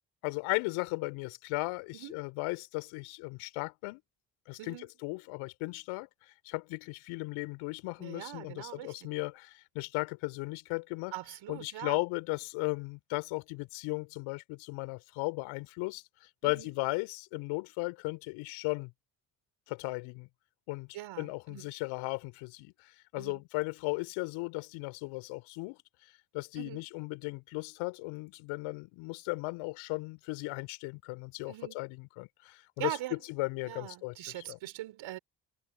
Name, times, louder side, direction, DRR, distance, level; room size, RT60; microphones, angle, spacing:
voice 1, 0.2-4.0 4.5-11.1 11.5-18.9 19.7-20.3 20.7-34.6, left 25 dB, 75° left, 3.5 m, -36 dB
voice 2, 4.6-4.9 8.0-9.1 11.1-12.0 16.4-16.7 20.9-21.7 23.2-23.4 26.6-26.9 31.5-31.8 32.8-33.2 33.6-35.2, right 15 dB, 65° right, 5.3 m, -42 dB
figure-of-eight pair, 40°, 49 cm